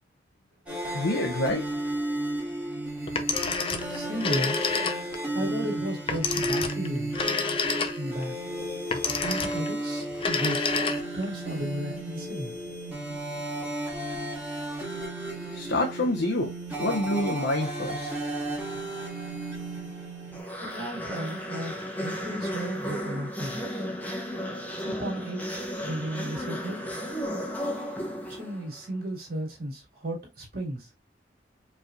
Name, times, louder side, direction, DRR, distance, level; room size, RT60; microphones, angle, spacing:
sound 1, 0.7-20.4, right 1 dB, 10° right, 1.8 m, -33 dB
voice 1, 0.9-1.6 15.5-16.5 16.8-18.1, left 1 dB, 80° left, 0.6 m, -27 dB
Telephone, 3.1-5.3 6.1-8.2 8.9-9.7 10.1-11.3, left 5 dB, 30° left, 0.5 m, -29 dB
voice 2, 3.9-4.6 5.3-7.1 7.9-8.3 9.2-10.6 11.1-12.5 20.6-23.9 24.8-25.4 25.8-26.8 28.3-30.9, right 1 dB, 55° right, 2.1 m, -34 dB
sound 2, 20.3-28.8, equal, 10° left, 0.9 m, -34 dB
4.8 x 3.3 x 2.5 m
head